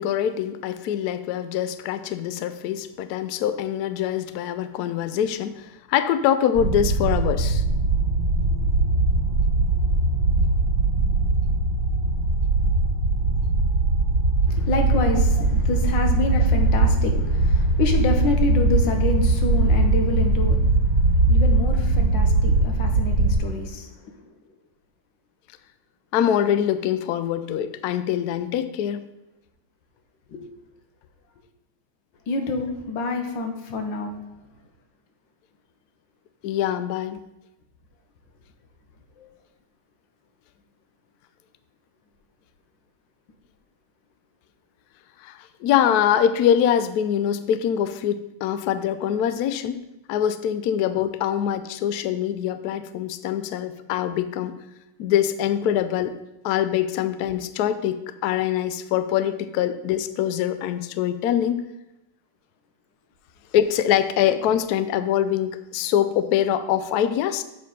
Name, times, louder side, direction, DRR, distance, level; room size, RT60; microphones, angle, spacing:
voice 1, 0.0-7.6 26.1-29.1 36.4-37.2 45.2-49.8 50.1-54.5 55.0-56.1 56.4-61.6 63.5-67.4, left 10 dB, 90° left, 12 dB, 0.8 m, -24 dB
sound 1, 6.5-23.4, right 2 dB, 65° right, 1.8 m, -20 dB
voice 2, 14.5-24.3 30.3-30.5 32.3-34.1 39.2-39.3, left 3 dB, 70° left, 5 dB, 1.7 m, -28 dB
7.5 x 4.7 x 5.2 m, 0.93 s
omnidirectional pair, 2.2 m